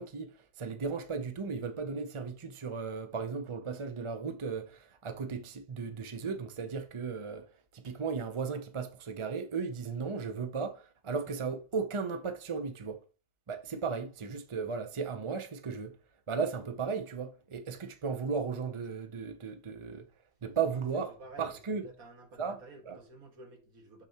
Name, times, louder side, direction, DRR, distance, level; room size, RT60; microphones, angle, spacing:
voice 1, 0.0-13.0 13.5-16.0 16.3-20.1 20.4-21.8 22.4-23.0, right 5 dB, 45° right, 0.4 m, -36 dB
voice 2, 21.1-21.5 21.7-24.0, right 2 dB, 85° right, 2.0 m, -51 dB
6.8 x 6.7 x 2.9 m
omnidirectional pair, 1.5 m